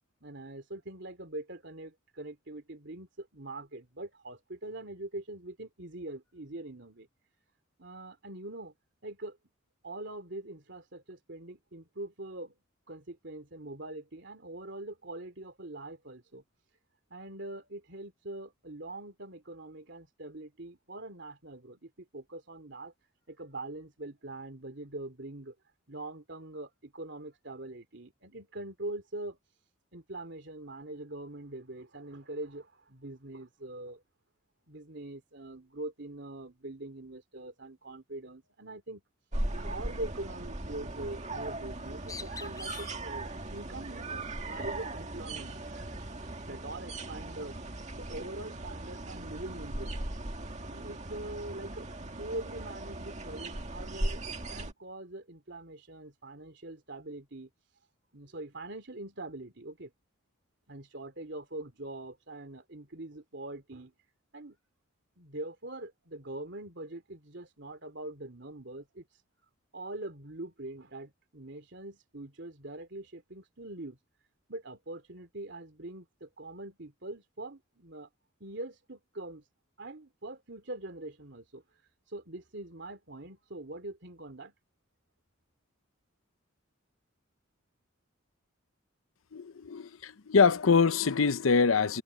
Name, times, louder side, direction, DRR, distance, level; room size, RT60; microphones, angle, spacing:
voice 1, 0.2-7.1 7.8-8.7 9.0-9.4 9.8-12.5 12.9-16.4 17.1-22.9 23.3-25.5 25.9-29.4 29.9-34.0 34.7-39.0 39.5-45.5 46.5-47.6 47.9-50.1 50.7-51.9 52.2-57.5 58.1-59.9 60.7-63.9 64.3-64.6 65.2-69.1 69.7-74.0 74.5-78.1 78.4-79.4 79.8-81.6 82.1-84.5, right 2 dB, 55° right, 3.2 m, -43 dB
sound 1, 39.3-54.7, right 2 dB, 35° right, 2.1 m, -38 dB
Bird, 41.7-46.5, left 3 dB, 15° left, 3.8 m, -49 dB
voice 2, 89.3-92.0, left 5 dB, 80° left, 0.7 m, -24 dB
head